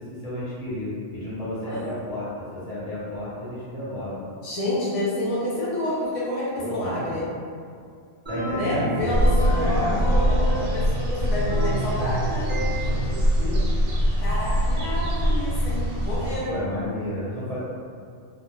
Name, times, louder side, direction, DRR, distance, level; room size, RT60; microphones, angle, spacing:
voice 1, 0.0-4.2 6.6-7.2 8.3-9.0 9.4-10.3 12.9-13.7 16.5-17.6, left 1 dB, 35° left, -11 dB, 0.9 m, -32 dB
voice 2, 4.4-7.2 8.5-12.5 14.2-16.5, left 1 dB, 65° left, -8 dB, 0.3 m, -29 dB
sound 1, 8.3-10.9 11.2-13.1, right 1 dB, 15° right, 0.5 m, -30 dB
sound 2, 9.1-16.4, equal, 70° right, 0.8 m, -23 dB
2.2 x 2.1 x 3.0 m, 2.3 s
omnidirectional pair, 1.2 m